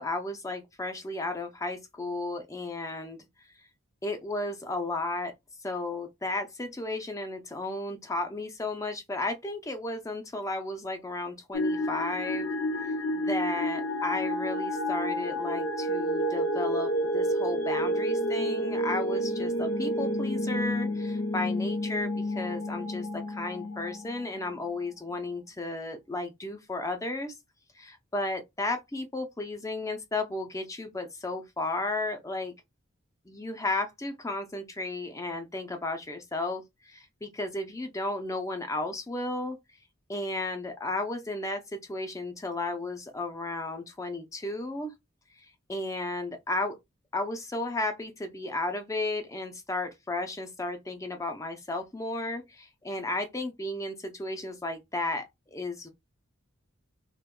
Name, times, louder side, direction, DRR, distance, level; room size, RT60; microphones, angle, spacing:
voice 1, 0.0-3.2 4.0-5.3 5.6-12.5 13.1-27.3 27.7-32.5 33.3-39.6 40.1-44.9 45.4-46.8 47.1-55.9, left 2 dB, 15° left, 0.4 m, -34 dB
sound 1, 11.5-24.6, equal, 70° left, 0.6 m, -30 dB
2.9 x 2.2 x 3.6 m
head